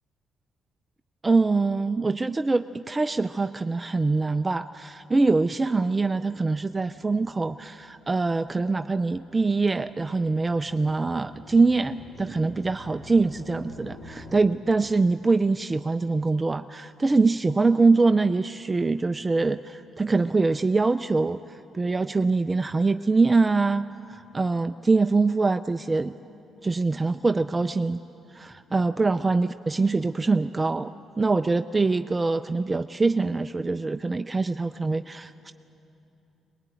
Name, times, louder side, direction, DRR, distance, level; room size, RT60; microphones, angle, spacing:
voice 1, 1.2-26.1 26.6-28.0 28.3-35.5, right 3 dB, 20° right, 10 dB, 0.4 m, -24 dB
sound 1, 6.2-14.4, left 2 dB, 85° left, 2.9 m, -49 dB
20.5 x 19.5 x 9.1 m, 2.8 s
cardioid pair, 90°, 0 cm